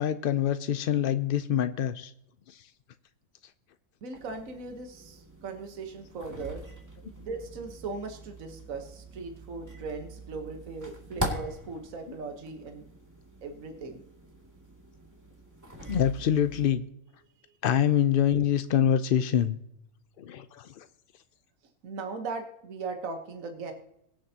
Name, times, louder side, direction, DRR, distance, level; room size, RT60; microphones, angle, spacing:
voice 1, 0.0-2.1 2.5-2.6 15.9-16.8 17.6-19.6 20.2-20.9, left 9 dB, 70° left, 11 dB, 0.5 m, -25 dB
voice 2, 4.0-6.6 7.2-12.9 13.4-14.0 21.8-23.7, right 4 dB, 65° right, 4 dB, 1.6 m, -38 dB
sound 1, 4.1-16.7, right 1 dB, 10° right, 2.3 m, -42 dB
22.5 x 7.7 x 2.8 m, 0.80 s
omnidirectional pair, 1.5 m